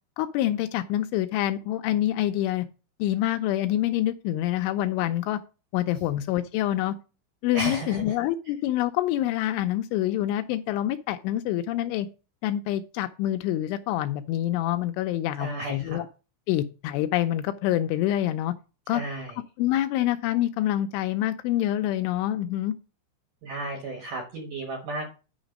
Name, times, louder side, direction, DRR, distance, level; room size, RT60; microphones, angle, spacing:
voice 1, 0.2-2.7 3.0-5.4 5.7-7.0 7.4-12.1 12.4-16.1 16.5-18.5 18.9-19.0 19.6-22.7, left 13 dB, 85° left, 2.8 m, -26 dB
voice 2, 7.5-8.2 15.4-16.1 18.9-19.4 23.4-25.1, right 2 dB, 70° right, 2.0 m, -34 dB
9.6 x 5.0 x 5.2 m
omnidirectional pair, 5.7 m